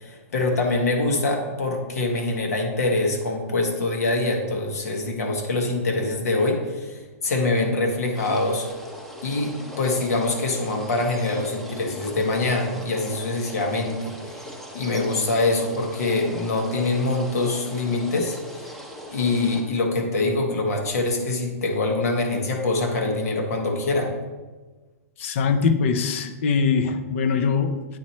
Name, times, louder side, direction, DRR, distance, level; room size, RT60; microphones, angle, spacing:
voice 1, 0.0-8.7 9.2-18.8 19.1-24.1, left 2 dB, 80° left, 2 dB, 1.5 m, -24 dB
sound 1, 8.1-19.6, equal, 5° left, 0.7 m, -40 dB
voice 2, 25.2-27.8, left 5 dB, 55° left, 10 dB, 0.6 m, -22 dB
9.0 x 3.0 x 4.2 m, 1.2 s
hypercardioid pair, 155°, 8 cm